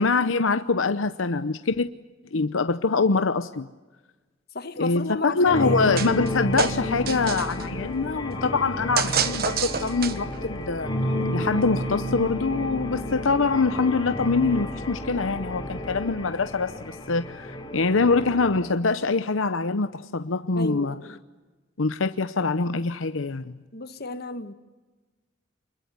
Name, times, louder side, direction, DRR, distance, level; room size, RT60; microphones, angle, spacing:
voice 1, 0.0-1.9 2.3-3.7 4.8-10.9 11.3-21.0 21.8-23.5, left 4 dB, 85° left, 0.8 m, -24 dB
voice 2, 4.5-5.9 20.6-21.2 23.7-24.5, left 2 dB, 55° left, 1.8 m, -33 dB
sound 1, 5.4-18.7, left 1 dB, 25° left, 3.6 m, -31 dB
sound 2, 6.0-6.3 6.6-7.6 9.0-10.4, right 7 dB, 50° right, 1.3 m, -27 dB
28.0 x 22.0 x 9.5 m
head